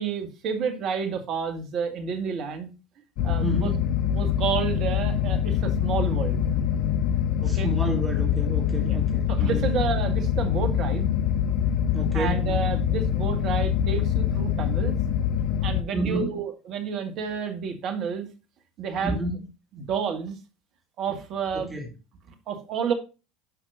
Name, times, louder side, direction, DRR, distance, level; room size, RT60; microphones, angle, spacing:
voice 1, 0.0-2.7 3.2-3.7 4.1-6.5 7.4-7.7 8.8-9.0 9.3-11.1 12.1-15.0 15.6-18.3 18.8-19.2 19.8-20.4 21.0-21.7 22.5-22.9, right 6 dB, 50° right, 6 dB, 1.9 m, -30 dB
sound 1, 3.2-15.8, left 9 dB, 60° left, 0.6 m, -24 dB
voice 2, 3.4-3.8 7.4-9.7 11.9-12.5 15.9-16.3 19.0-19.5 21.5-21.9, right 1 dB, 15° right, 1 dB, 2.5 m, -30 dB
11.0 x 6.0 x 2.6 m, 0.30 s
hypercardioid pair, 70°, 0 cm